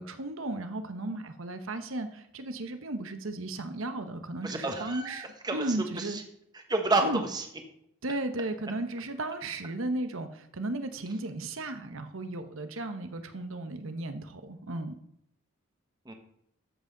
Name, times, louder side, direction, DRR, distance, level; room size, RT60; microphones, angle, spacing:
voice 1, 0.0-6.2 7.0-7.2 8.0-15.0, right 2 dB, 70° right, 9 dB, 0.9 m, -35 dB
voice 2, 4.4-6.2 6.5-7.4 16.1-16.2, right 2 dB, 20° right, 4 dB, 1.1 m, -30 dB
13.0 x 7.7 x 3.9 m, 0.76 s
head